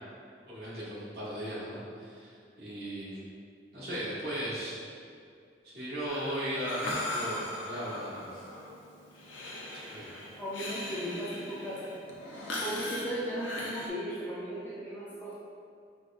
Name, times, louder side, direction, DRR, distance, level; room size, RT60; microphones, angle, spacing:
voice 1, 0.4-3.2 3.7-4.8 5.6-8.4 9.7-10.1, equal, 55° right, -8 dB, 1.0 m, -37 dB
Breathing, 6.1-13.9, left 1 dB, 90° left, 0.5 m, -39 dB
voice 2, 10.4-11.9 12.6-15.3, equal, 10° left, -8 dB, 0.4 m, -36 dB
5.2 x 2.1 x 2.5 m, 2.4 s
head